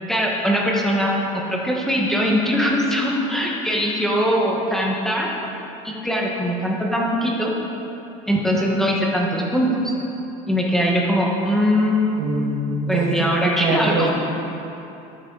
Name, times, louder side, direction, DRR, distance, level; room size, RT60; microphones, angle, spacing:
voice 1, 0.1-5.3 5.8-7.5 8.3-9.8 10.5-12.2 12.7-14.1, equal, ahead, -3 dB, 1.2 m, -21 dB
voice 2, 12.2-14.1, right 3 dB, 70° right, 0 dB, 1.7 m, -23 dB
12.5 x 10.0 x 3.9 m, 2.9 s
cardioid pair, 150°, 17 cm